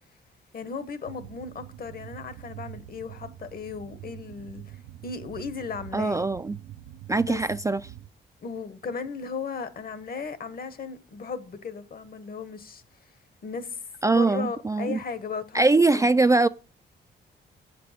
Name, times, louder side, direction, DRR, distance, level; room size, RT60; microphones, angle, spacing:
voice 1, 0.5-6.3 7.1-7.4 8.4-12.8 13.4-13.8 14.1-15.6 15.9-16.1, left 5 dB, 50° left, 1.1 m, -36 dB
sound 1, 1.0-8.1, right 13 dB, 85° right, 0.6 m, -44 dB
voice 2, 5.9-6.5 7.1-7.8 14.0-15.0 15.5-16.5, right 3 dB, 15° right, 0.3 m, -22 dB
8.2 x 6.0 x 5.0 m
cardioid pair, 80°, 19 cm